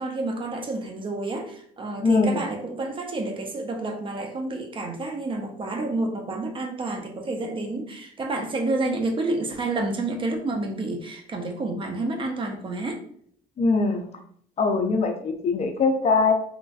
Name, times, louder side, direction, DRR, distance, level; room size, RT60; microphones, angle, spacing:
voice 1, 0.0-13.0, right 2 dB, 30° right, 0.5 m, -29 dB
voice 2, 2.0-2.4 13.6-14.1 14.6-16.3, left 4 dB, 40° left, 0.5 m, -22 dB
3.1 x 2.5 x 2.3 m
cardioid pair, 110°, 17 cm